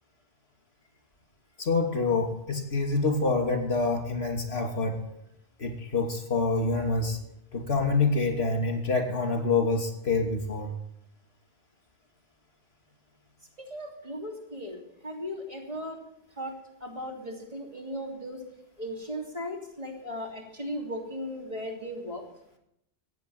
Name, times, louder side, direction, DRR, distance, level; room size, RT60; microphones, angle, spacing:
voice 1, 1.6-5.0 5.6-7.2 7.5-10.7, left 3 dB, 65° left, 3 dB, 3.0 m, -26 dB
voice 2, 13.6-16.0 16.4-16.5 16.8-18.4 18.8-22.2, equal, 35° right, 0 dB, 3.2 m, -37 dB
15.5 x 9.0 x 9.2 m, 0.81 s
omnidirectional pair, 1.1 m